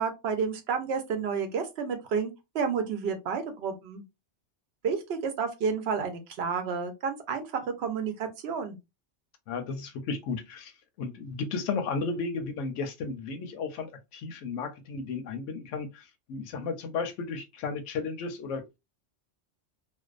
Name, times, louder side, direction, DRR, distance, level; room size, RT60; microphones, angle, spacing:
voice 1, 0.0-4.0 4.8-8.8, right 6 dB, 65° right, 0.8 m, -30 dB
voice 2, 9.5-10.7 11.0-18.6, left 4 dB, 90° left, 0.9 m, -34 dB
2.5 x 2.1 x 2.4 m
omnidirectional pair, 1.2 m